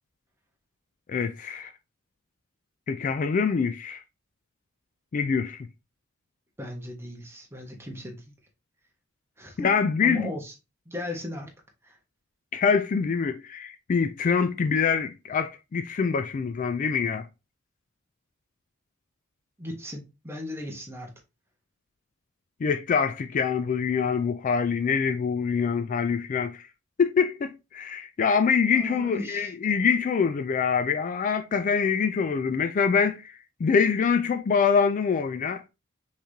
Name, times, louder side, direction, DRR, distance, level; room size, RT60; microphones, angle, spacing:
voice 1, 1.1-1.7 2.9-4.0 5.1-5.7 9.6-10.3 12.5-17.3 22.6-26.6 27.0-35.6, left 6 dB, 40° left, 0.3 m, -25 dB
voice 2, 6.6-8.2 9.4-9.7 10.0-10.5 10.9-11.5 11.8-12.0 19.6-21.1 28.7-29.5, left 1 dB, 15° right, 1.2 m, -36 dB
5.6 x 3.2 x 2.7 m
head